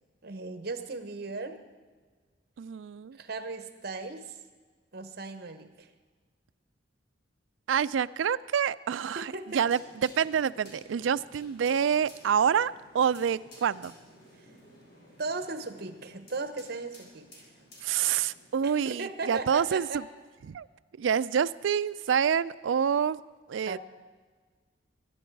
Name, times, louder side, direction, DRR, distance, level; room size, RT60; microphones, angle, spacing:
voice 1, 0.2-1.6 3.1-4.4 4.9-5.9 9.1-9.6 14.4-14.5 15.2-17.5 18.6-20.0 23.7-23.8, right 3 dB, 55° right, 10 dB, 1.0 m, -37 dB
voice 2, 2.6-3.2 7.7-13.9 17.8-20.0 20.5-20.7 21.0-23.2 23.5-23.8, right 7 dB, 85° right, 17 dB, 0.4 m, -27 dB
sound 1, 9.5-18.7, left 1 dB, 55° left, 4.2 m, -54 dB
22.5 x 10.0 x 4.6 m, 1.5 s
head